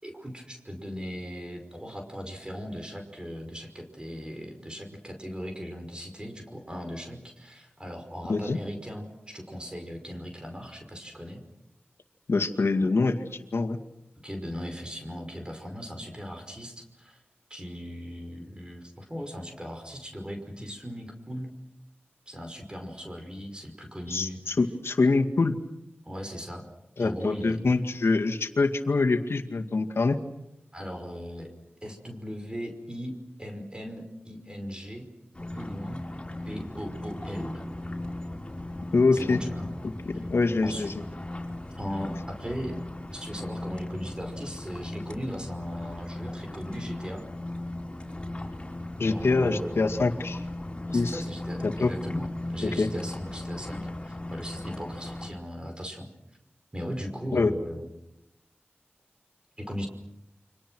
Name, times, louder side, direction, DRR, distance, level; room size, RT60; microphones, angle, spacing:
voice 1, 0.0-11.4 12.8-12.9 14.2-17.2 17.5-21.5 22.3-24.6 26.0-26.7 27.0-27.6 30.7-31.5 31.8-35.1 35.5-36.0 36.5-37.7 39.1-39.8 40.1-40.3 40.6-40.9 41.7-42.8 43.1-47.3 49.1-49.8 50.9-56.1 56.7-57.9 59.6-59.9, equal, 20° right, 4 dB, 5.3 m, -38 dB
voice 2, 12.3-13.1 13.5-13.8 24.1-25.5 27.0-30.2 38.9-39.4 40.1-40.9 49.0-50.4 50.9-51.2 51.6-51.9 52.6-52.9 57.3-57.5, left 3 dB, 75° left, 5 dB, 2.1 m, -25 dB
sound 1, 35.3-55.3, left 1 dB, 25° left, 6.1 m, -37 dB
30.0 x 25.5 x 6.3 m, 0.89 s
wide cardioid pair, 50°, 4 cm